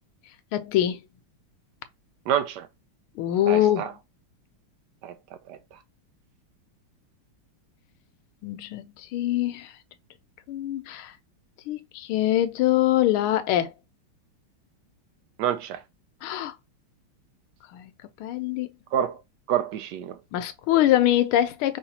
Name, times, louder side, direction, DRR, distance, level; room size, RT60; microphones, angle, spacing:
voice 1, 0.5-1.0 3.2-4.0 8.4-9.7 10.5-11.1 11.7-13.7 16.2-16.5 17.7-17.9 18.2-18.7 20.3-21.8, left 13 dB, 80° left, 1.5 m, -24 dB
voice 2, 2.3-2.7 3.5-3.9 5.0-5.1 5.5-5.6 15.4-15.8 18.9-19.2 19.5-20.2, right 10 dB, 85° right, 0.9 m, -27 dB
5.5 x 3.2 x 2.8 m
omnidirectional pair, 2.4 m